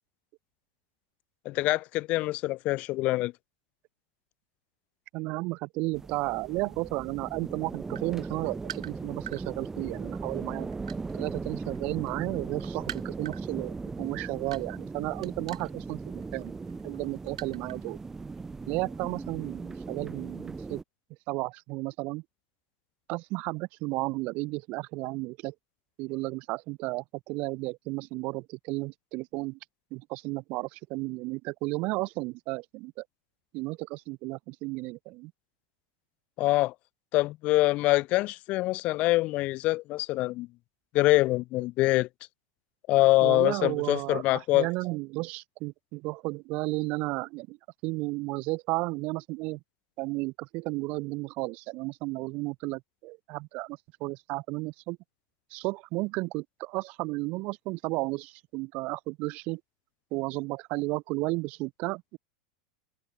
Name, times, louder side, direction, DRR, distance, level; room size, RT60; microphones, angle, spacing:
voice 1, 1.4-3.3 36.4-36.7 37.1-40.5 40.9-42.1 42.9-44.7, left 19 dB, 45° left, 0.6 m, -25 dB
voice 2, 5.1-10.7 11.1-16.6 16.8-18.0 18.7-20.8 21.3-22.2 23.1-25.5 26.0-29.6 29.9-33.0 33.5-35.3 43.2-47.6 47.8-49.6 50.0-55.0 55.5-59.6 60.1-62.2, right 23 dB, 50° right, 0.5 m, -33 dB
sound 1, 5.9-20.8, right 4 dB, 15° right, 0.8 m, -38 dB
sound 2, 7.8-9.4 10.1-11.8 12.1-17.9 18.2-18.4, right 11 dB, 85° right, 3.3 m, -44 dB
hypercardioid pair, 115°, 3 cm